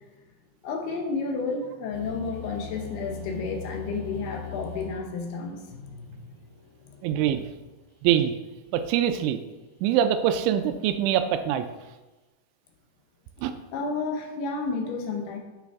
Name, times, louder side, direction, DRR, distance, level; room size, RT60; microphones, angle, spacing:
voice 1, 0.6-6.2 6.8-7.0 13.7-15.4, left 4 dB, 75° left, 2 dB, 2.6 m, -31 dB
sound 1, 1.9-7.8, left 7 dB, 10° left, 1.5 m, -41 dB
voice 2, 7.0-7.4 8.0-8.3 8.7-9.4 9.8-11.7 13.4-13.5, right 10 dB, 85° right, 9 dB, 2.9 m, -23 dB
11.5 x 5.9 x 3.6 m, 1.1 s
omnidirectional pair, 5.5 m